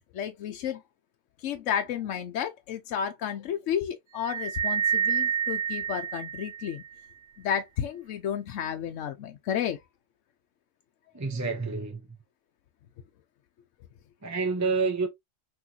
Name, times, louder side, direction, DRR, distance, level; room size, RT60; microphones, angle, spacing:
voice 1, 0.1-0.8 1.4-6.8 7.4-9.8, left 9 dB, 90° left, 1.0 m, -32 dB
sound 1, 4.2-6.9, right 8 dB, 75° right, 0.9 m, -28 dB
voice 2, 11.1-12.1 14.2-15.1, right 4 dB, 20° right, 0.5 m, -28 dB
6.2 x 3.0 x 2.8 m
omnidirectional pair, 1.2 m